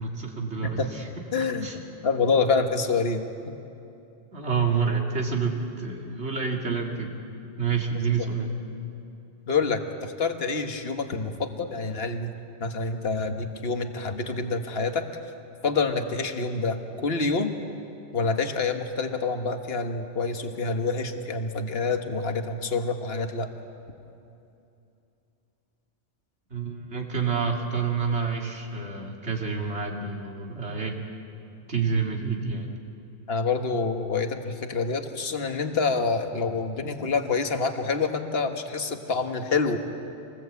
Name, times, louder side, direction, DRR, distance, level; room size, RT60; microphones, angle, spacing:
voice 1, 0.0-1.8 4.3-7.1 7.6-8.5 26.5-31.0 31.7-32.7, right 5 dB, 55° right, 1 dB, 2.9 m, -28 dB
voice 2, 1.3-1.7 2.0-3.6 8.1-8.3 9.5-12.3 12.6-15.1 15.6-17.5 18.1-23.5 33.3-39.8, left 4 dB, 50° left, 6 dB, 1.6 m, -27 dB
26.0 x 20.0 x 8.3 m, 2.7 s
omnidirectional pair, 1.4 m